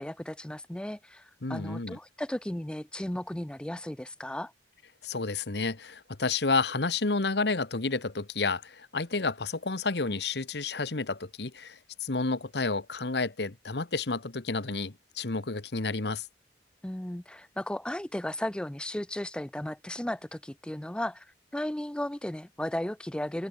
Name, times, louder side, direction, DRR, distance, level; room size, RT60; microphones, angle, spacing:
voice 1, 0.0-4.5 16.8-21.3 21.5-23.5, left 1 dB, 5° left, 0.4 m, -35 dB
voice 2, 1.4-2.0 5.0-16.3, left 3 dB, 65° left, 1.2 m, -30 dB
head